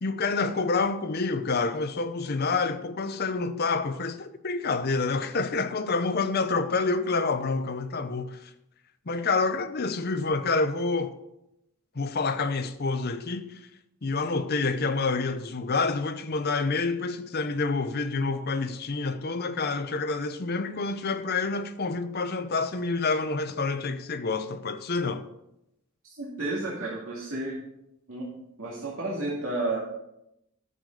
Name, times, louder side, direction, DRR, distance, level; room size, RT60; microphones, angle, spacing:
voice 1, 0.0-8.5 9.1-11.2 11.9-13.6 14.0-25.3, left 3 dB, 45° left, 0.7 m, -28 dB
voice 2, 26.1-27.6 28.1-28.3 28.6-29.8, right 2 dB, 65° right, 2.3 m, -31 dB
11.0 x 6.7 x 5.3 m
head